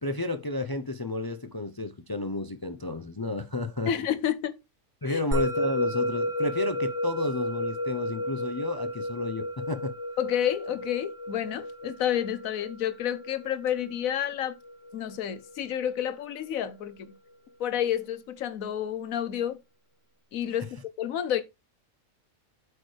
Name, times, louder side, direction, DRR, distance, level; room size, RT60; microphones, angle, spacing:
voice 1, 0.0-3.9 5.0-9.9, left 2 dB, 25° left, 0.5 m, -32 dB
voice 2, 3.9-4.5 5.1-5.2 10.2-14.6 14.9-17.1 17.6-19.6 20.3-21.4, left 10 dB, 85° left, 1.3 m, -30 dB
Musical instrument, 5.3-15.9, equal, 35° right, 2.3 m, -33 dB
8.8 x 6.5 x 3.3 m
omnidirectional pair, 1.4 m